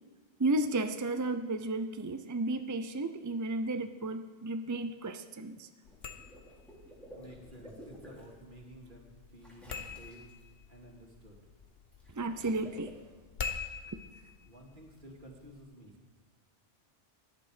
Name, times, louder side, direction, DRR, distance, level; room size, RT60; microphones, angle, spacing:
voice 1, 0.4-5.7 12.1-12.9, right 2 dB, 25° right, 9 dB, 0.4 m, -33 dB
sound 1, 5.8-15.6, left 5 dB, 55° left, 1.2 m, -46 dB
Water / Liquid, 5.8-8.3 9.4-10.4 11.9-12.9, equal, ahead, 3.6 m, -52 dB
voice 2, 7.1-9.7 10.0-10.2 10.7-11.4 14.4-15.9, right 1 dB, 45° right, 0 dB, 2.5 m, -52 dB
17.0 x 11.0 x 5.0 m, 1.4 s
omnidirectional pair, 1.2 m